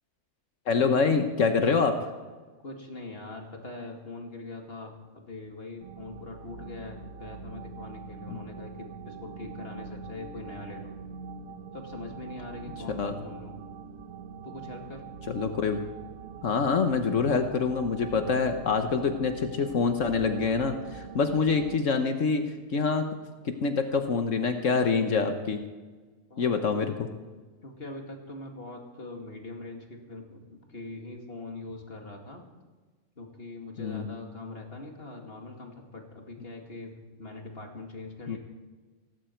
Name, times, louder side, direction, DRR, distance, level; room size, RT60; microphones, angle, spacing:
voice 1, 0.7-2.0 8.3-8.4 13.0-13.1 15.3-15.8 16.4-22.4 22.7-23.1 23.4-25.6 26.4-27.1 33.8-34.1 38.3-38.4, left 5 dB, 70° left, 6 dB, 1.4 m, -26 dB
voice 2, 2.6-11.0 11.7-13.6 14.4-15.0 26.3-26.7 27.6-32.5 33.2-38.4, left 2 dB, 50° left, 2 dB, 2.4 m, -42 dB
sound 1, 5.8-21.8, right 5 dB, 90° right, 1.3 m, -43 dB
17.5 x 16.0 x 4.5 m, 1.3 s
omnidirectional pair, 1.4 m